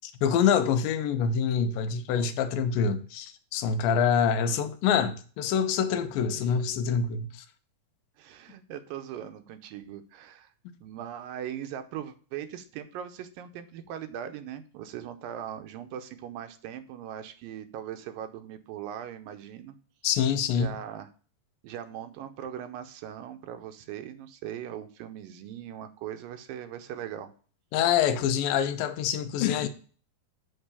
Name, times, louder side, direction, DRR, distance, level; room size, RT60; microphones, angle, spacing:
voice 1, 0.2-7.4 20.0-20.7 27.7-29.7, left 7 dB, 80° left, 2.4 m, -26 dB
voice 2, 8.2-10.5 10.8-19.8 20.5-21.1 21.6-27.3, right 10 dB, 80° right, 2.4 m, -40 dB
8.0 x 3.8 x 6.7 m
omnidirectional pair, 4.0 m